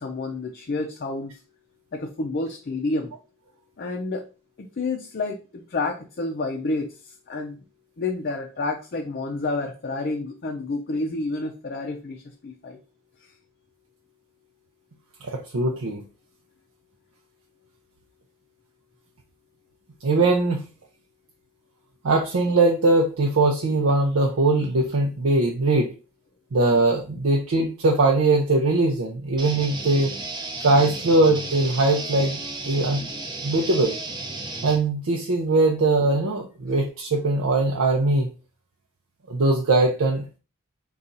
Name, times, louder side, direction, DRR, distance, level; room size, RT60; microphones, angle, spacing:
voice 1, 0.0-1.3 1.9-3.1 3.8-4.3 4.8-6.9 7.3-7.6 8.0-12.8, left 3 dB, 45° left, 1 dB, 0.5 m, -29 dB
voice 2, 15.2-16.0 20.0-20.6 22.0-25.9 26.5-30.1 30.6-32.4 32.6-33.0 33.4-34.0 34.6-38.3 39.3-40.4, right 2 dB, 75° right, 0 dB, 0.6 m, -21 dB
sound 1, 29.4-34.8, right 2 dB, 20° right, 0.6 m, -34 dB
4.1 x 2.3 x 3.9 m, 0.34 s
head